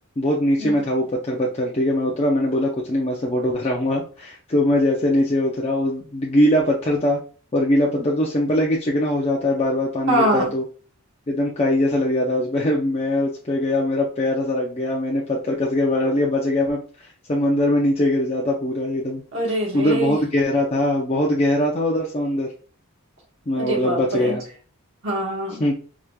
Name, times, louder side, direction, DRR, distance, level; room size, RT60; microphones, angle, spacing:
voice 1, 0.2-7.2 7.5-10.6 11.3-19.2 19.7-22.5 23.5-24.4 25.6-25.8, left 1 dB, 30° left, -2 dB, 0.5 m, -21 dB
voice 2, 10.1-10.5 19.3-20.2 23.5-24.4 25.0-25.6, right 1 dB, 60° right, -1 dB, 1.2 m, -23 dB
4.9 x 2.9 x 2.2 m, 0.39 s
head